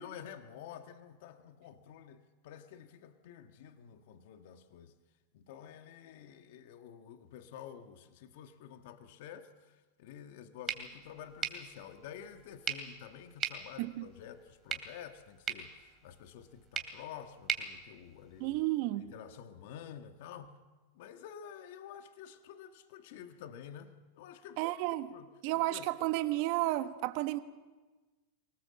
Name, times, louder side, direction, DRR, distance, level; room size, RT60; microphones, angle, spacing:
voice 1, 0.0-4.9 5.3-18.6 19.0-20.6 20.9-24.7 25.1-25.3 25.5-25.9, left 9 dB, 65° left, 1.5 m, -50 dB
sound 1, 10.7-18.7, right 7 dB, 25° right, 2.7 m, -42 dB
voice 2, 18.4-19.1 24.6-25.1 25.4-27.4, right 17 dB, 55° right, 1.3 m, -32 dB
24.5 x 18.5 x 7.6 m
hypercardioid pair, 120°, 0 cm